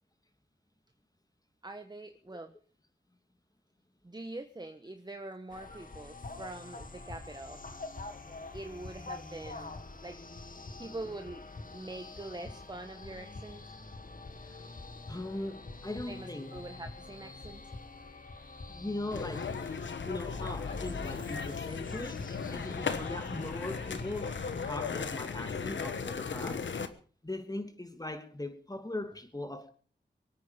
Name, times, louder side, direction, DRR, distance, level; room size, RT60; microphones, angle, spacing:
voice 1, 1.6-2.5 4.0-7.6 8.5-10.2 10.8-11.4 11.7-13.7 16.1-17.6, right 2 dB, 20° right, 1.3 m, -44 dB
sound 1, 5.5-24.8, left 3 dB, 45° left, 2.2 m, -45 dB
voice 2, 15.1-16.5 18.7-19.5 20.0-22.2 22.5-26.7 27.2-29.7, left 2 dB, 20° left, 3.0 m, -39 dB
sound 2, 19.1-26.9, left 5 dB, 85° left, 1.3 m, -37 dB
24.0 x 9.3 x 5.3 m
cardioid pair, 50°, 19 cm